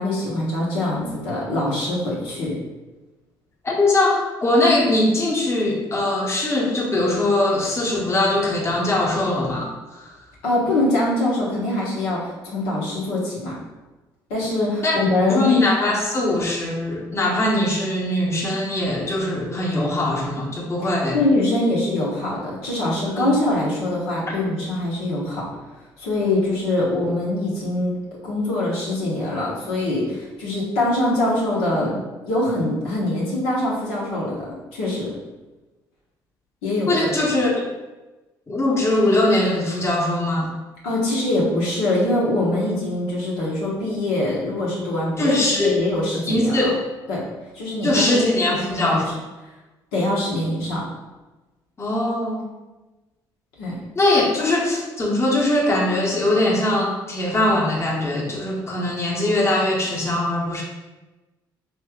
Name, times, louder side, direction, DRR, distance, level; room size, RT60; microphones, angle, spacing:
voice 1, 0.0-2.5 10.4-13.5 14.3-15.5 21.1-25.4 26.0-27.9 28.2-31.9 32.2-35.1 36.6-37.1 40.8-46.7 47.1-47.2 47.5-48.2 48.4-49.0 49.9-50.8 53.6-53.7, left 1 dB, 85° left, -6 dB, 1.1 m, -23 dB
voice 2, 3.6-10.1 14.8-14.9 15.3-21.2 23.2-23.3 36.9-37.5 38.5-40.5 45.2-45.8 46.3-46.8 47.8-49.2 51.8-52.4 53.9-60.6, left 1 dB, 25° left, -3 dB, 1.0 m, -21 dB
3.1 x 2.7 x 3.6 m, 1.1 s
hypercardioid pair, 60°, 10 cm